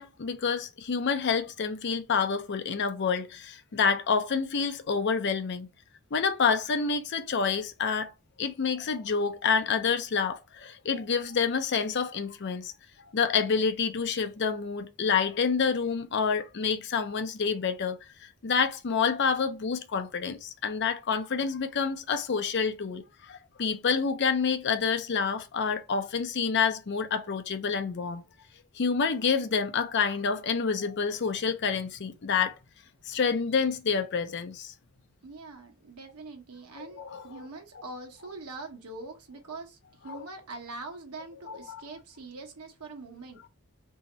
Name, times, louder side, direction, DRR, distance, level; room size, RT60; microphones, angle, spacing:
voice 1, 0.0-5.7 6.1-8.1 8.4-12.7 13.1-28.2 28.7-32.5 33.0-34.7 36.8-37.5 37.7-37.8 40.1-40.2 41.5-41.8, left 5 dB, 50° left, 0.5 m, -28 dB
voice 2, 35.2-43.4, right 3 dB, 90° right, 1.0 m, -43 dB
3.0 x 2.8 x 4.1 m
head